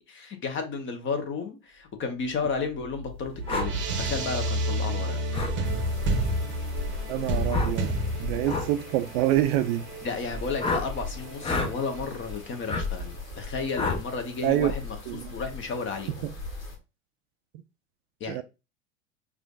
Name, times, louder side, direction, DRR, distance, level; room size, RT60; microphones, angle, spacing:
voice 1, 0.1-5.2 10.0-16.2 18.2-18.4, left 4 dB, 30° left, 1.0 m, -33 dB
sound 1, 2.6-13.2, right 1 dB, 30° right, 0.8 m, -32 dB
sound 2, 3.5-3.7 5.3-5.6 7.5-7.8 8.4-8.7 10.6-10.9 11.4-11.7 12.7-12.9 13.8-14.0, left 3 dB, 15° left, 0.6 m, -28 dB
sound 3, 5.6-16.8, left 2 dB, 90° left, 1.0 m, -37 dB
voice 2, 7.1-9.8 14.4-14.7 15.1-15.3 16.2-16.3 18.3-18.4, right 13 dB, 55° right, 0.5 m, -26 dB
4.9 x 2.4 x 2.4 m
hypercardioid pair, 85°, 39 cm